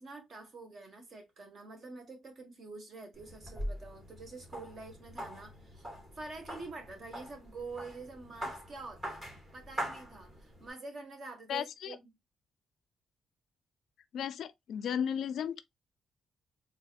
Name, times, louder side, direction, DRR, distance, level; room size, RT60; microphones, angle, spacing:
voice 1, 0.0-5.9 6.1-9.2 9.5-12.1, right 3 dB, 40° right, 1.6 m, -47 dB
sound 1, 3.1-10.7, equal, 25° right, 2.6 m, -43 dB
voice 2, 11.5-12.0 14.1-15.6, left 8 dB, 65° left, 0.4 m, -34 dB
4.1 x 3.6 x 2.4 m
cardioid pair, 145°, 0 cm